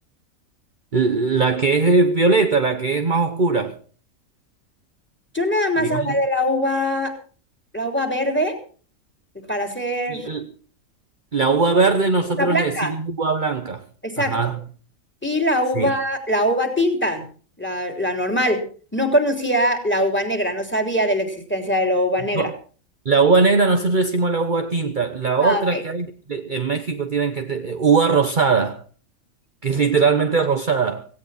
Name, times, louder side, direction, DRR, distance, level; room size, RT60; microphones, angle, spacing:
voice 1, 0.9-3.8 5.8-6.2 10.1-10.5 11.3-13.8 14.2-14.6 15.8-15.9 22.3-22.5 23.0-28.8 29.6-31.0, right 4 dB, 40° right, 1.1 m, -20 dB
voice 2, 5.3-7.1 7.7-8.6 9.5-10.3 12.4-12.9 14.0-14.4 15.2-17.2 17.6-18.6 18.9-22.5 25.4-25.8, equal, 10° left, 3.3 m, -22 dB
17.5 x 17.0 x 4.2 m
omnidirectional pair, 1.4 m